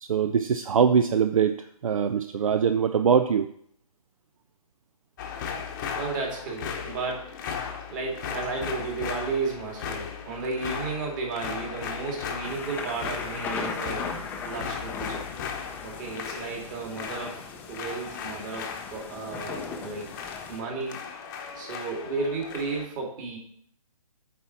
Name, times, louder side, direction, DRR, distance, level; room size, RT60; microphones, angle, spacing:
voice 1, 0.0-3.5, right 7 dB, 65° right, 10 dB, 0.5 m, -23 dB
sound 1, 5.2-22.9, left 6 dB, 30° left, 0.9 m, -37 dB
voice 2, 5.9-7.3 7.9-14.1 14.4-15.2 15.8-17.4 17.7-20.0 20.5-21.0 21.5-23.4, right 4 dB, 30° right, -1 dB, 2.4 m, -33 dB
sound 2, 12.4-20.6, left 5 dB, 10° left, 0.5 m, -38 dB
8.4 x 4.3 x 5.9 m, 0.66 s
figure-of-eight pair, 140°, 19 cm